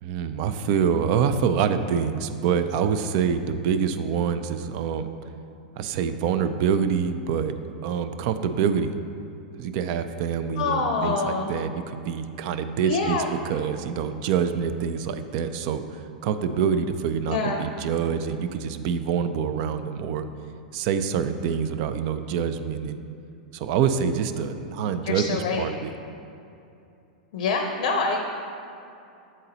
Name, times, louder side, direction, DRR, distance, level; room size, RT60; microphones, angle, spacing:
voice 1, 0.0-5.1 5.8-7.5 7.8-9.0 9.6-20.3 20.7-23.0 23.5-25.9, right 7 dB, 50° right, 10 dB, 0.4 m, -26 dB
voice 2, 10.6-11.5 12.8-13.3 17.3-17.6 25.0-25.6 27.3-28.2, left 4 dB, 55° left, 4 dB, 0.5 m, -25 dB
7.5 x 3.9 x 3.9 m, 2.7 s
hypercardioid pair, 100°, 5 cm